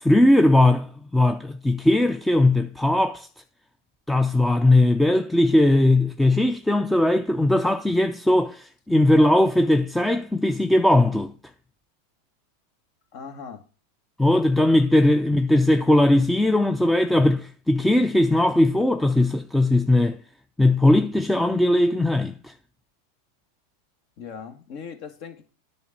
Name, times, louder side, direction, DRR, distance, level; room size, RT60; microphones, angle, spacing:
voice 1, 0.0-3.3 4.1-11.3 14.2-20.2 20.6-22.5, left 1 dB, 5° left, 0.6 m, -19 dB
voice 2, 13.1-13.7 24.2-25.4, left 6 dB, 55° left, 1.7 m, -39 dB
9.2 x 4.1 x 7.1 m
hypercardioid pair, 100°, 0 cm